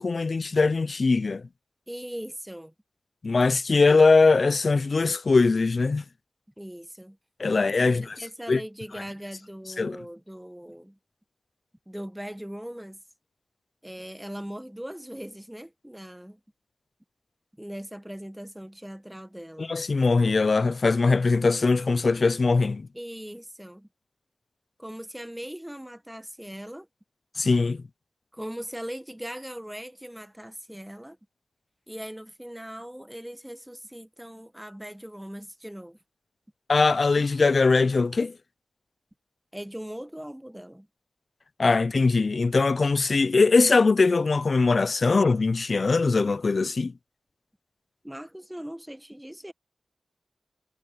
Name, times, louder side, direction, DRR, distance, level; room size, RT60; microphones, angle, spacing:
voice 1, 0.0-1.4 3.2-6.0 7.4-8.2 8.5-8.6 9.8-10.0 19.6-22.9 27.4-27.8 36.7-38.3 41.6-46.9, left 4 dB, 60° left, 0.6 m, -21 dB
voice 2, 1.9-2.7 6.6-7.2 7.8-11.0 11.9-13.0 13.8-16.4 17.6-19.7 22.9-23.9 24.8-26.9 28.3-31.2 31.9-36.0 39.5-40.9 48.0-49.5, equal, 5° right, 1.5 m, -40 dB
cardioid pair, 45°, 0 cm